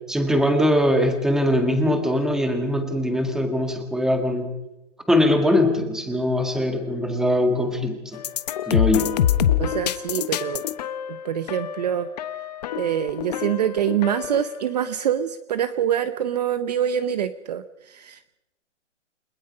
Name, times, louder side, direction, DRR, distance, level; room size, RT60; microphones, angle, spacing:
voice 1, 0.1-4.5 5.1-8.2 8.7-9.2, left 1 dB, ahead, 5 dB, 1.8 m, -21 dB
sound 1, 8.1-14.6, left 10 dB, 35° left, 1.1 m, -26 dB
voice 2, 9.6-10.6 11.1-12.1 12.7-18.4, right 9 dB, 35° right, 11 dB, 0.9 m, -25 dB
30.0 x 21.0 x 5.5 m, 0.97 s
hypercardioid pair, 165°, 37 cm